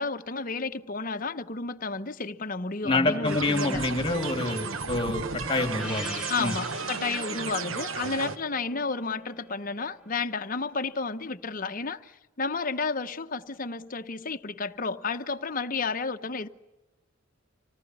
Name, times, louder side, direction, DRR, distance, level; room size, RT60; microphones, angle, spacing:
voice 1, 0.0-3.8 6.3-16.5, left 4 dB, 45° left, 0.9 m, -32 dB
voice 2, 2.8-6.5, left 2 dB, 25° left, 2.6 m, -27 dB
sound 1, 3.2-8.4, right 4 dB, 80° right, 1.2 m, -34 dB
Gong, 5.8-10.5, left 1 dB, 5° right, 2.8 m, -43 dB
26.5 x 19.0 x 9.7 m
head